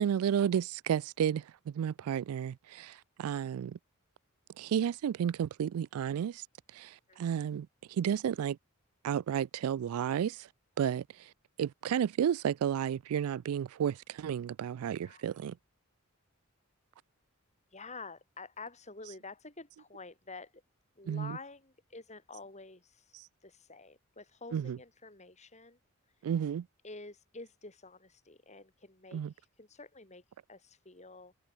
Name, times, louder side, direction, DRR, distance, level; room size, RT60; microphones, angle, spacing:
voice 1, 0.0-3.8 4.6-6.4 6.7-7.7 8.0-8.6 9.0-10.5 10.8-11.0 11.6-15.5 19.1-19.2 21.1-21.4 24.5-24.8 26.2-26.7 29.1-29.3, right 8 dB, 80° right, 0.3 m, -32 dB
voice 2, 15.0-15.6 17.7-20.6 21.0-25.8 26.1-26.3 26.8-31.3, left 3 dB, 30° left, 5.5 m, -49 dB
head